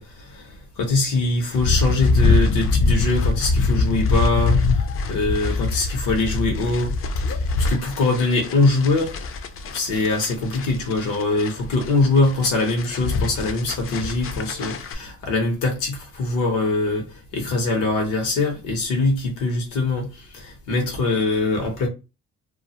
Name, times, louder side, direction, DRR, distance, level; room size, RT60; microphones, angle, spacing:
voice 1, 0.0-7.0 7.6-9.2 9.7-21.9, left 2 dB, 90° left, 0.9 m, -23 dB
sound 1, 1.5-14.9, left 3 dB, 45° left, 0.5 m, -23 dB
2.3 x 2.3 x 2.8 m
cardioid pair, 90°, 30 cm